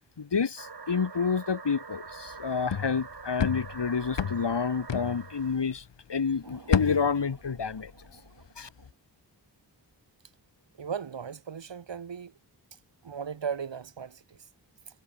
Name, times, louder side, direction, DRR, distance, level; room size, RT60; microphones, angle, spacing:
voice 1, 0.2-5.8 6.1-7.9 8.6-8.7, left 5 dB, 70° left, 4.2 m, -29 dB
sound 1, 0.6-5.6 6.4-8.9, right 5 dB, 60° right, 4.4 m, -46 dB
sound 2, 2.3-6.0 6.3-8.3 8.6-8.9, left 7 dB, 85° left, 1.6 m, -32 dB
voice 2, 10.8-12.3 13.0-14.4, right 7 dB, 85° right, 2.2 m, -36 dB
wide cardioid pair, 115°, 43 cm